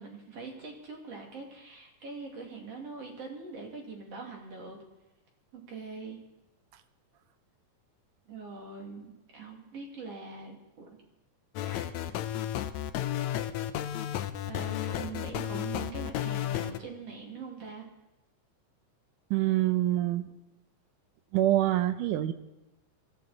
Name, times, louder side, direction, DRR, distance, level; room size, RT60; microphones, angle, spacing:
voice 1, 0.0-4.8 5.5-6.2 8.3-11.0 11.6-11.9 14.5-17.9, right 4 dB, 50° right, 0 dB, 3.4 m, -43 dB
sound 1, 11.6-16.8, left 11 dB, 75° left, 1.9 m, -32 dB
voice 2, 19.3-20.3 21.3-22.3, right 14 dB, 80° right, 11 dB, 2.3 m, -25 dB
22.5 x 15.0 x 4.2 m, 0.98 s
omnidirectional pair, 3.6 m